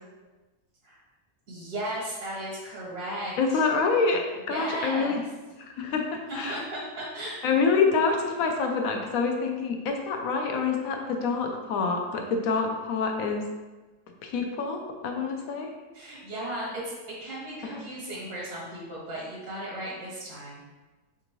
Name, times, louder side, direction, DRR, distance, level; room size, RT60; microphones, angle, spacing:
voice 1, 1.5-3.6 4.5-5.2 5.8-5.9 6.3-7.4 15.9-20.6, right 1 dB, 80° right, -5 dB, 1.6 m, -36 dB
voice 2, 3.4-4.2 4.5-5.2 5.6-6.6 7.4-13.5 14.2-15.7 17.7-17.8, left 4 dB, 70° left, 3 dB, 0.9 m, -26 dB
3.9 x 3.5 x 2.9 m, 1.2 s
omnidirectional pair, 1.7 m